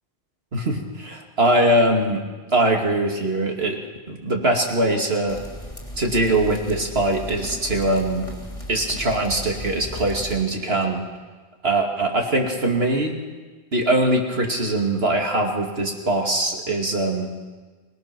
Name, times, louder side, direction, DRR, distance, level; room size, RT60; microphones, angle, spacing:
voice 1, 0.5-2.2 2.5-3.8 4.1-5.4 6.0-8.3 8.7-11.0 11.6-13.2 13.7-17.3, right 1 dB, 70° right, 1 dB, 2.8 m, -22 dB
sound 1, 5.3-10.4, equal, 30° left, 2.9 m, -36 dB
26.5 x 18.0 x 6.1 m, 1.4 s
omnidirectional pair, 1.1 m